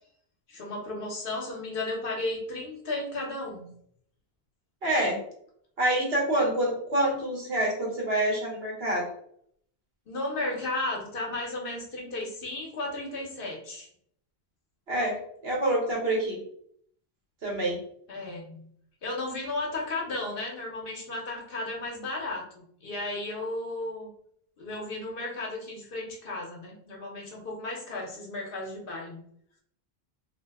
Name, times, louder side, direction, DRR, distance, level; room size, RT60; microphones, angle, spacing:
voice 1, 0.5-3.7 10.1-13.9 18.1-18.7 19.0-24.1 24.6-29.2, left 2 dB, 60° left, -1 dB, 0.9 m, -34 dB
voice 2, 4.8-5.2 5.8-9.1 14.9-15.2 15.4-16.4 17.4-17.8, right 1 dB, 70° right, -3 dB, 1.2 m, -26 dB
2.7 x 2.1 x 3.3 m, 0.66 s
omnidirectional pair, 1.1 m